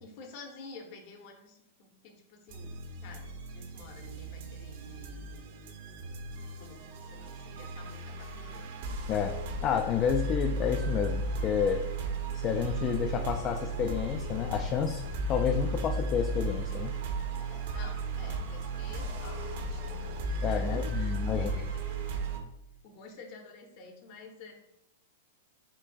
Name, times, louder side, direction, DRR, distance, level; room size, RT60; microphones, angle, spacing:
voice 1, 0.0-2.7 3.0-5.5 6.3-8.7 17.4-20.1 20.5-22.2 22.8-24.5, left 3 dB, 50° left, 3 dB, 1.0 m, -50 dB
sound 1, 2.5-22.4, right 2 dB, 65° right, 0.8 m, -35 dB
voice 2, 9.1-11.8 12.3-15.0 15.3-16.9 20.4-21.5, left 7 dB, 35° left, 5 dB, 0.4 m, -30 dB
7.4 x 2.5 x 2.3 m, 0.83 s
hypercardioid pair, 115°, 0 cm